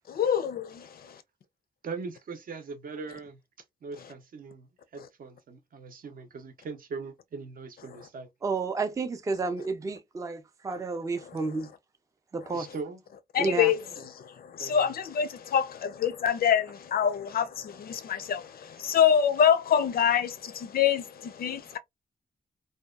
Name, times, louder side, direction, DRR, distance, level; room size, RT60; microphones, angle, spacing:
voice 1, 0.1-1.2 13.3-21.8, left 8 dB, 70° left, 0.4 m, -26 dB
voice 2, 1.8-3.4 3.8-8.3 12.5-13.0 13.4-14.1 14.6-15.0, right 4 dB, 65° right, 0.6 m, -41 dB
voice 3, 8.4-11.7 12.3-12.6 13.4-13.7, right 4 dB, 20° right, 0.3 m, -31 dB
2.7 x 2.2 x 2.2 m
wide cardioid pair, 150°, 16 cm